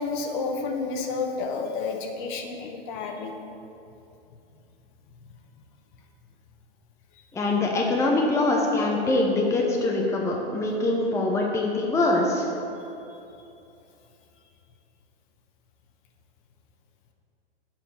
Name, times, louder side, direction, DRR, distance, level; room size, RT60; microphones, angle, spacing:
voice 1, 0.0-3.3 13.1-13.2, left 4 dB, 50° left, 3 dB, 1.1 m, -30 dB
voice 2, 7.3-12.5, left 2 dB, 10° left, -1 dB, 0.7 m, -23 dB
7.5 x 4.4 x 6.7 m, 2.8 s
hypercardioid pair, 120°, 32 cm